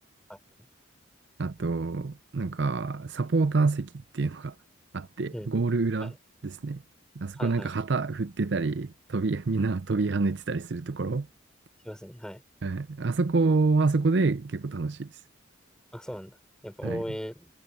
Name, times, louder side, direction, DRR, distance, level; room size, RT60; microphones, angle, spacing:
voice 1, 1.4-4.5 4.9-6.1 6.4-6.8 7.2-11.3 12.6-15.1 16.8-17.0, right 3 dB, 60° right, 0.5 m, -27 dB
voice 2, 7.4-7.7 11.8-12.4 15.9-16.4 16.6-17.5, equal, 5° left, 3.6 m, -37 dB
head